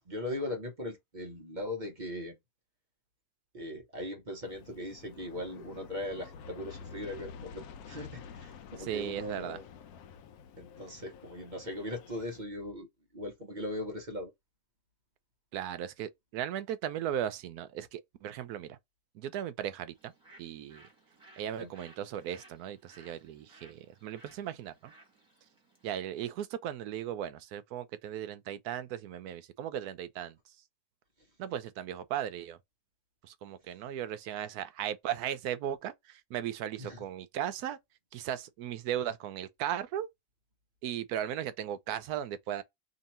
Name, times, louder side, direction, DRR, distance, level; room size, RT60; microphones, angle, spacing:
voice 1, 0.1-2.4 3.5-9.6 10.6-12.9 13.1-14.3 21.6-21.7 36.8-37.0, left 1 dB, 35° right, 0.9 m, -39 dB
Aircraft, 4.4-12.4, left 6 dB, 80° left, 1.1 m, -49 dB
voice 2, 8.8-9.6 15.5-18.8 19.1-20.1 20.4-20.8 21.4-24.9 25.8-30.4 31.4-32.6 33.2-37.8 38.1-40.1 40.8-42.6, right 10 dB, 90° right, 1.1 m, -37 dB
Bird, 19.9-26.1, right 2 dB, 5° right, 1.5 m, -60 dB
3.0 x 2.8 x 4.2 m
omnidirectional pair, 1.6 m